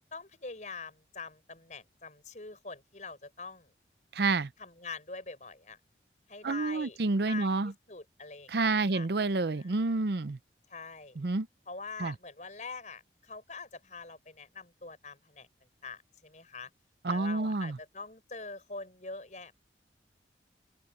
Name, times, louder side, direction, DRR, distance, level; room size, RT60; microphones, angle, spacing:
voice 1, 0.1-3.7 4.6-5.8 6.3-7.0 7.2-9.1 9.4-9.8 10.7-11.2 11.7-15.5 15.8-16.7 17.1-19.5, left 4 dB, 40° left, 5.2 m, -44 dB
voice 2, 4.1-4.5 6.4-7.7 8.5-10.4 11.2-11.5 12.0-12.1 17.0-17.8, right 3 dB, 60° right, 0.6 m, -29 dB
open air
head